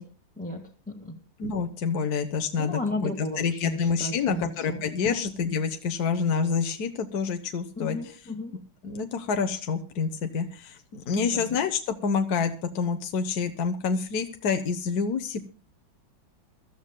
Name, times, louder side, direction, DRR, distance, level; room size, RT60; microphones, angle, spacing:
voice 1, 0.4-1.2 2.6-5.2 7.8-8.5 11.1-11.6, left 1 dB, 5° left, -2 dB, 1.5 m, -34 dB
voice 2, 1.4-8.0 8.8-15.4, left 5 dB, 60° left, 7 dB, 1.3 m, -28 dB
23.5 x 13.5 x 2.2 m, 0.35 s
omnidirectional pair, 2.1 m